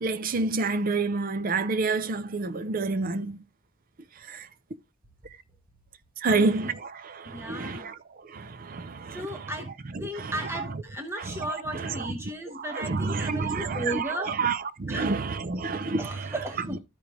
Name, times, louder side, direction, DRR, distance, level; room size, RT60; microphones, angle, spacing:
voice 1, 0.0-3.4 4.3-4.5 6.2-8.0 8.2-9.5 9.9-10.6 11.2-12.1 12.5-16.3, right 3 dB, 40° right, 0.5 m, -29 dB
voice 2, 7.3-7.9 9.1-9.7 10.0-14.4 14.9-15.1 16.0-16.8, right 1 dB, 10° right, 0.9 m, -35 dB
13.0 x 5.0 x 3.0 m
head